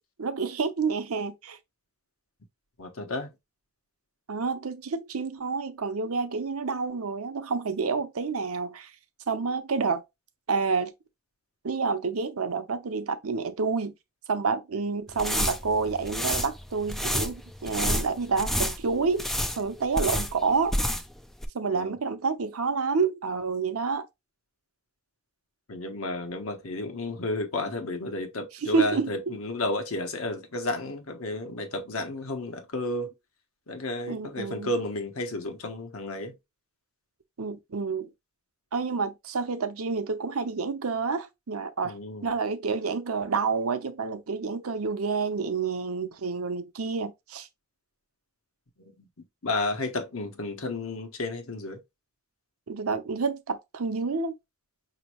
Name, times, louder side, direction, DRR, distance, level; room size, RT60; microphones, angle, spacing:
voice 1, 0.2-1.6 4.3-8.9 9.3-10.0 10.5-10.9 11.6-13.9 14.3-19.3 19.6-20.8 21.5-24.1 28.6-29.1 34.1-34.7 37.4-38.1 38.7-47.5 52.7-54.3, right 4 dB, 85° right, 0.7 m, -29 dB
voice 2, 2.8-3.3 21.7-21.9 25.7-33.1 33.7-36.3 41.8-42.3 49.0-49.1 49.4-51.8, left 2 dB, 70° left, 1.1 m, -32 dB
sound 1, 15.1-21.2 21.4-21.5, equal, ahead, 0.4 m, -29 dB
5.2 x 2.9 x 3.0 m
head